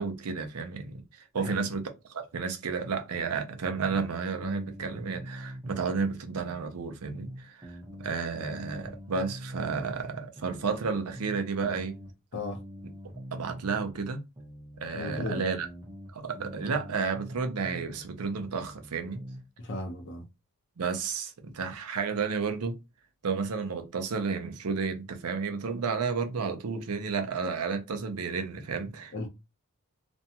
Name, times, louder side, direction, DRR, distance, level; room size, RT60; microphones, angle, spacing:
voice 1, 0.0-12.0 13.3-14.2 14.8-15.7 16.1-19.2 20.8-22.8 23.2-29.3, right 5 dB, 80° right, 0.6 m, -32 dB
voice 2, 1.3-1.7 12.3-12.6 14.9-15.4 19.6-20.2 29.1-29.3, left 2 dB, 55° left, 0.7 m, -35 dB
sound 1, 3.6-6.1 6.4-10.1 10.4-14.1 14.4-18.1 18.4-19.4, equal, 20° right, 0.8 m, -44 dB
2.5 x 2.2 x 2.7 m
head